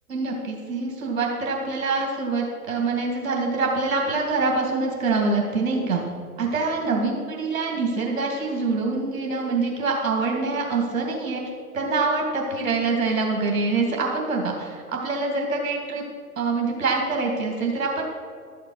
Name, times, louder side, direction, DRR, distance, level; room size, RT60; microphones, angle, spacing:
voice 1, 0.1-6.0 6.4-11.4 11.7-16.0 16.4-18.0, right 3 dB, 65° right, 0 dB, 2.7 m, -25 dB
13.0 x 6.6 x 6.5 m, 2.1 s
figure-of-eight pair, 110°, 45 cm